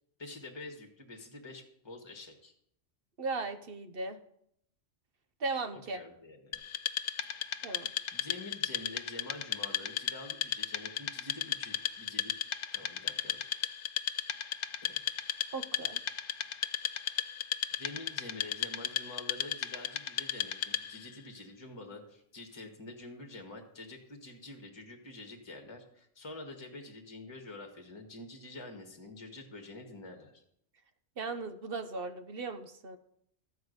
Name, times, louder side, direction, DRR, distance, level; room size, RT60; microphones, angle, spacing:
voice 1, 0.2-2.5 5.9-6.6 8.1-12.3 12.7-13.4 14.8-15.0 17.8-30.4, left 2 dB, 20° left, 3 dB, 1.5 m, -47 dB
voice 2, 3.2-4.2 5.4-6.0 7.6-7.9 15.5-16.0 31.2-33.0, right 3 dB, 50° right, 9 dB, 1.0 m, -37 dB
Wood, 6.5-21.1, left 9 dB, 85° left, 0.3 m, -35 dB
13.5 x 4.7 x 7.9 m, 0.71 s
omnidirectional pair, 1.3 m